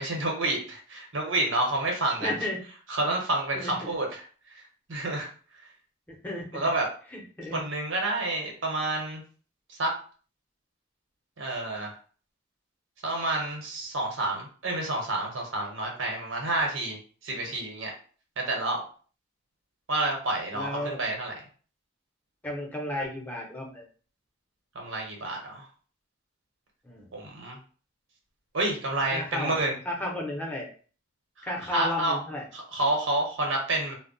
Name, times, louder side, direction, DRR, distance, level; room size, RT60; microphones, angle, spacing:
voice 1, 0.0-2.3 2.9-4.2 4.5-4.6 4.9-5.3 6.5-6.9 7.5-9.2 9.7-9.9 11.4-11.9 13.0-17.0 17.2-17.9 18.4-18.8 19.9-21.3 24.7-25.7 27.1-27.6 28.5-29.8 31.4-32.2 32.5-33.9, right 2 dB, 90° right, 1 dB, 0.9 m, -29 dB
voice 2, 2.2-2.6 3.5-3.9 6.1-6.6 7.1-7.6 20.5-21.1 22.4-23.8 26.8-27.1 29.1-30.7 31.4-32.4, left 1 dB, 10° left, -1 dB, 0.6 m, -33 dB
2.2 x 2.0 x 3.8 m, 0.41 s
head